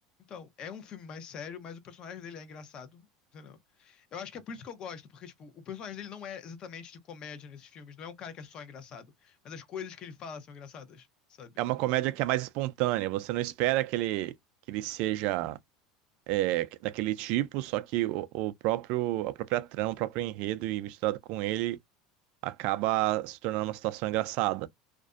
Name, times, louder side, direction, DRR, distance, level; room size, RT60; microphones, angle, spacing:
voice 1, 0.3-3.1 3.3-11.1 11.4-11.5, left 7 dB, 40° left, 0.6 m, -43 dB
voice 2, 11.6-14.3 14.7-15.6 16.3-21.8 22.4-24.7, right 16 dB, 60° right, 0.3 m, -30 dB
2.4 x 2.1 x 2.4 m
supercardioid pair, 120°, 2 cm